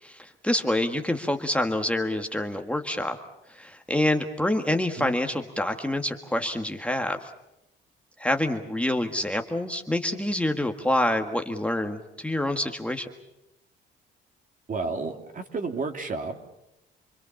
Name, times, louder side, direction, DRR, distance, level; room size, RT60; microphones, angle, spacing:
voice 1, 0.0-3.2 3.5-7.3 8.2-13.1, left 1 dB, 5° left, 5 dB, 1.7 m, -27 dB
voice 2, 14.7-16.5, right 3 dB, 40° right, 5 dB, 2.8 m, -31 dB
28.0 x 22.0 x 7.2 m, 0.87 s
cardioid pair, 90°, 20 cm